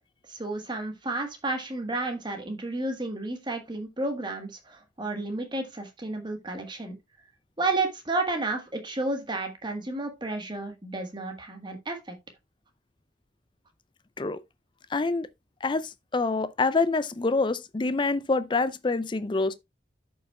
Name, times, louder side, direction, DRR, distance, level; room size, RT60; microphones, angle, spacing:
voice 1, 0.3-7.0 7.6-12.2, right 2 dB, 25° right, 1.3 m, -31 dB
voice 2, 14.9-15.3 15.6-19.5, left 3 dB, 25° left, 0.4 m, -26 dB
13.0 x 5.4 x 2.3 m
head